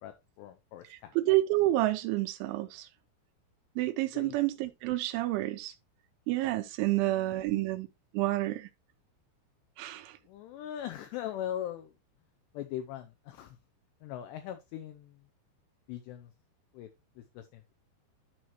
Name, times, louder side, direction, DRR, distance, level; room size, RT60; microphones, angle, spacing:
voice 1, 0.0-1.2 4.1-4.4 6.9-7.6 10.3-11.9 12.5-13.6 14.0-15.2 15.9-16.3 16.7-16.9 17.2-17.7, left 11 dB, 80° left, 2.6 m, -41 dB
voice 2, 1.2-2.9 3.8-5.7 6.3-7.9 8.1-8.7 9.8-10.1, right 17 dB, 85° right, 3.0 m, -29 dB
12.0 x 4.6 x 2.9 m
omnidirectional pair, 5.4 m